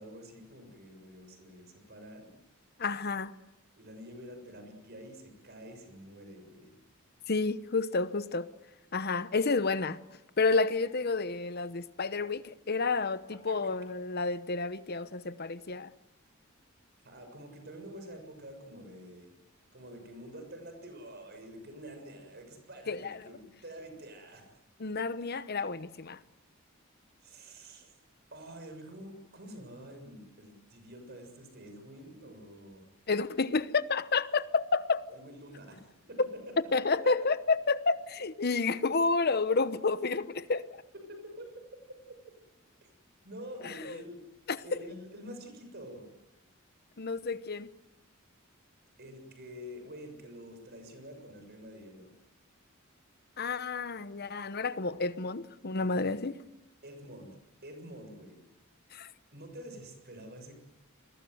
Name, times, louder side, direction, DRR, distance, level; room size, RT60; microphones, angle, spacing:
voice 1, 0.0-2.4 3.8-6.8 13.5-13.8 17.0-19.3 19.7-24.5 27.2-27.9 28.3-32.9 35.1-35.8 36.1-36.5 37.0-37.3 40.9-41.5 41.9-42.0 43.2-44.2 44.6-46.1 49.0-52.1 56.8-57.3 57.6-58.4 59.3-60.6, equal, 50° right, 6.9 m, -47 dB
voice 2, 2.8-3.3 7.3-8.5 8.9-10.0 10.4-15.9 22.9-23.2 24.8-26.2 33.1-35.1 36.2-36.3 36.7-40.7 43.6-44.0 44.5-44.6 47.0-47.7 53.4-56.4 58.9-59.1, left 4 dB, 50° left, 1.0 m, -30 dB
29.0 x 22.0 x 8.0 m
head